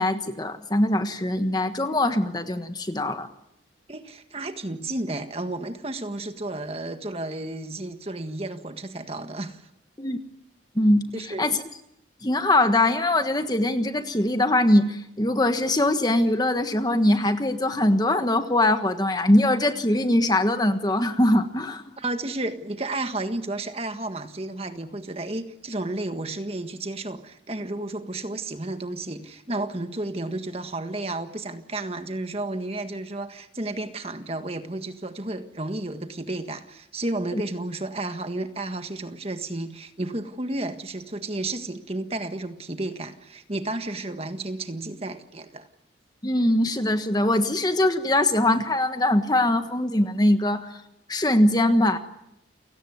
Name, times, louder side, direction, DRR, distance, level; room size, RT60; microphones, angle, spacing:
voice 1, 0.0-3.3 10.0-10.2 10.7-11.6 12.2-21.8 37.3-37.4 46.2-50.6 51.1-52.0, left 1 dB, 20° left, 8 dB, 1.4 m, -22 dB
voice 2, 3.9-9.6 11.1-11.5 22.0-45.7, right 2 dB, 30° right, 8 dB, 1.6 m, -32 dB
29.5 x 18.0 x 9.5 m, 0.82 s
head